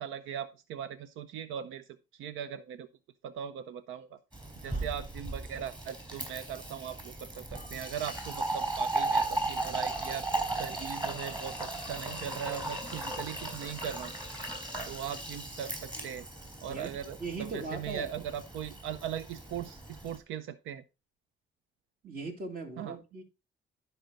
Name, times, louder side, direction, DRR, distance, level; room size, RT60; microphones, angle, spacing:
voice 1, 0.0-2.9 3.2-4.2 4.6-10.3 10.6-14.2 14.9-16.3 16.6-20.8 22.8-23.0, right 9 dB, 90° right, 0.6 m, -39 dB
Fill (with liquid), 4.3-20.2, right 2 dB, 25° right, 4.5 m, -36 dB
voice 2, 16.7-18.1 22.0-23.2, right 4 dB, 45° right, 2.5 m, -39 dB
11.5 x 5.6 x 3.9 m
cardioid pair, 90°, 20 cm